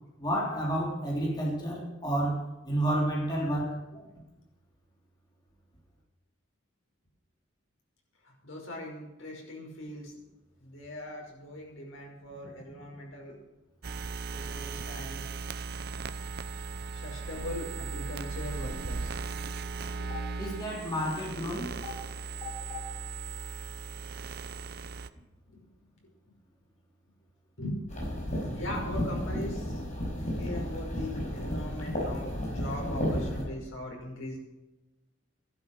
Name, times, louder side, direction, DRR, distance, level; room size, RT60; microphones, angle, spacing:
voice 1, 0.2-3.8 20.1-22.0 22.4-22.8, right 1 dB, 20° left, -3 dB, 3.6 m, -31 dB
voice 2, 8.2-10.1 10.6-13.4 14.3-15.3 16.9-19.2 25.5-25.6 27.6-27.8 28.3-29.8 30.2-34.4, left 1 dB, 80° left, 0 dB, 5.3 m, -40 dB
sound 1, 13.8-25.1, right 4 dB, 50° right, 0.6 m, -37 dB
sound 2, 27.9-33.4, equal, 35° left, 5.6 m, -33 dB
13.5 x 12.0 x 6.4 m, 1.0 s
head